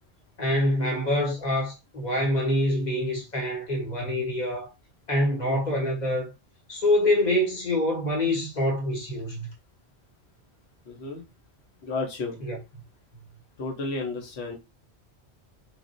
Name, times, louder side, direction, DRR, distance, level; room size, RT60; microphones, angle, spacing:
voice 1, 0.4-4.7 5.1-6.3 6.7-9.5 12.4-12.6, left 1 dB, 40° left, 1.0 m, -25 dB
voice 2, 10.8-11.3 11.8-12.4 13.6-14.6, left 3 dB, 75° left, 1.1 m, -32 dB
3.3 x 2.5 x 2.5 m
omnidirectional pair, 1.1 m